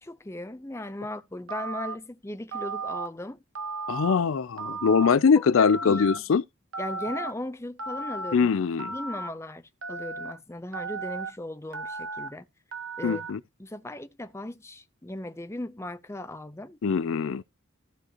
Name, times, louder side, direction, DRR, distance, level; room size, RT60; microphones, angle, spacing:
voice 1, 0.0-3.4 5.4-6.2 6.8-8.6 8.9-12.5 13.0-13.3 13.6-16.8, left 1 dB, 15° left, 0.6 m, -37 dB
Telephone, 1.5-1.9 2.5-3.1 3.5-4.2 4.6-5.1 5.6-6.2 6.7-7.3 7.8-8.3 8.8-9.3 9.8-10.3 10.7-11.3 11.7-12.3 12.7-13.3, right 3 dB, 90° right, 1.2 m, -35 dB
voice 2, 3.9-6.4 8.3-8.9 13.0-13.4 16.8-17.4, left 5 dB, 85° left, 0.4 m, -22 dB
15.0 x 5.2 x 2.9 m
head